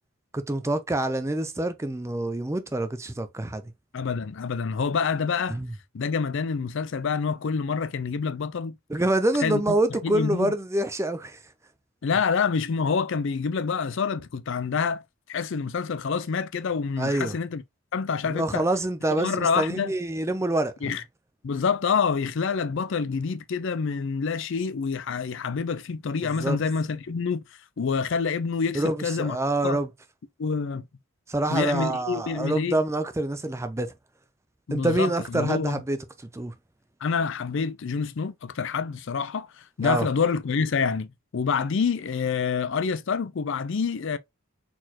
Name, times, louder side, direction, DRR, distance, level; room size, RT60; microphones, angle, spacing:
voice 1, 0.3-3.7 5.5-5.7 8.9-11.4 17.0-17.3 18.3-20.9 26.2-26.6 28.7-29.9 31.3-33.9 34.7-36.5 39.8-40.1, right 1 dB, 10° right, 0.4 m, -26 dB
voice 2, 3.9-5.6 5.9-8.7 9.4-9.7 10.0-10.5 12.0-15.0 15.3-17.6 17.9-18.6 19.2-19.9 20.8-21.0 21.4-27.4 27.8-29.4 29.6-29.8 30.4-30.9 31.5-32.8 34.7-35.8 37.0-44.2, left 5 dB, 55° left, 0.4 m, -27 dB
4.3 x 4.2 x 2.8 m
head